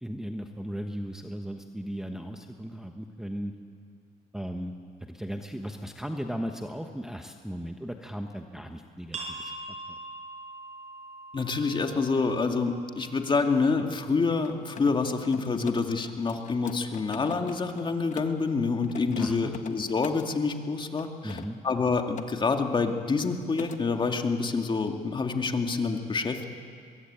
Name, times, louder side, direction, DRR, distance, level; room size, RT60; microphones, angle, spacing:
voice 1, 0.0-3.5 4.3-4.7 5.0-9.5 19.2-19.6 21.2-21.6, equal, 5° right, 4 dB, 1.2 m, -36 dB
sound 1, 9.1-14.5, right 2 dB, 45° right, 6.6 m, -43 dB
voice 2, 11.3-26.5, left 4 dB, 30° left, 4 dB, 2.2 m, -27 dB
Mechanisms, 14.4-18.4 18.8-20.3 20.9-22.3 22.6-23.0 23.2-23.8, left 7 dB, 45° left, 1.5 m, -42 dB
24.0 x 22.0 x 8.8 m, 2.2 s
cardioid pair, 110°, 17 cm